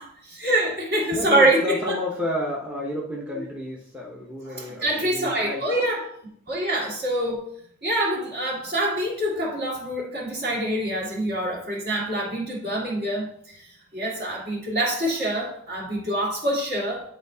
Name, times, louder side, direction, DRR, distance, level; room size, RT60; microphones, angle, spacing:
voice 1, 0.0-2.0 3.3-3.4 4.5-6.0 6.5-7.5 7.8-13.6 13.9-17.0, right 1 dB, 45° right, -3 dB, 2.1 m, -25 dB
voice 2, 1.1-5.6, left 1 dB, 5° right, -4 dB, 0.8 m, -31 dB
10.5 x 4.2 x 2.7 m, 0.68 s
head